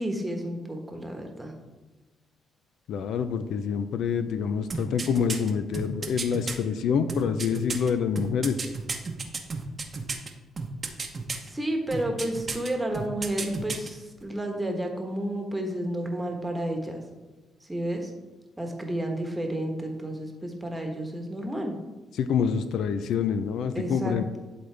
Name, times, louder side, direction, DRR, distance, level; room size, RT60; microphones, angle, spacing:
voice 1, 0.0-1.5 11.4-17.0 17.6-18.1 18.6-21.8 23.7-24.4, right 1 dB, 10° right, 3 dB, 1.2 m, -31 dB
voice 2, 2.9-8.6 22.2-24.4, left 7 dB, 75° left, 10 dB, 0.4 m, -27 dB
sound 1, 4.7-6.6 7.1-10.3 10.6-11.5 11.9-12.7 12.9-13.9 14.2-14.3, right 4 dB, 35° right, 0.8 m, -32 dB
11.5 x 3.9 x 3.3 m, 1.2 s
cardioid pair, 90°, 0 cm